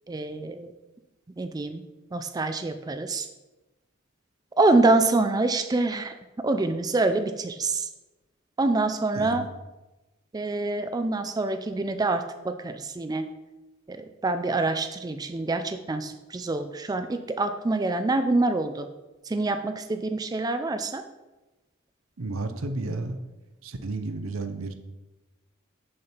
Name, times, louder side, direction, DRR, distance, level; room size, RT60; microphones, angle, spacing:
voice 1, 0.1-0.7 1.4-1.8 2.1-3.3 4.6-6.1 6.4-7.9 8.6-9.5 10.3-13.3 13.9-18.9 19.3-21.0, right 2 dB, 20° right, 8 dB, 0.4 m, -26 dB
voice 2, 9.1-9.5 22.2-23.2 23.6-24.7, right 3 dB, 85° right, 9 dB, 0.7 m, -32 dB
6.3 x 5.6 x 4.4 m, 1.1 s
head